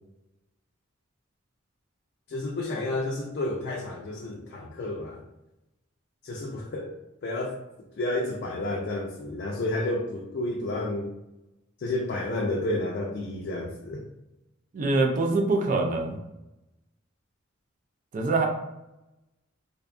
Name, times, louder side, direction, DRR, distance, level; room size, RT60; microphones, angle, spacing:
voice 1, 2.3-5.2 6.2-6.9 7.2-7.6 7.9-11.1 11.8-14.0, left 2 dB, 55° left, -1 dB, 0.3 m, -31 dB
voice 2, 14.7-16.2 18.1-18.5, right 3 dB, 40° right, 3 dB, 0.3 m, -24 dB
2.6 x 2.2 x 2.4 m, 0.92 s
head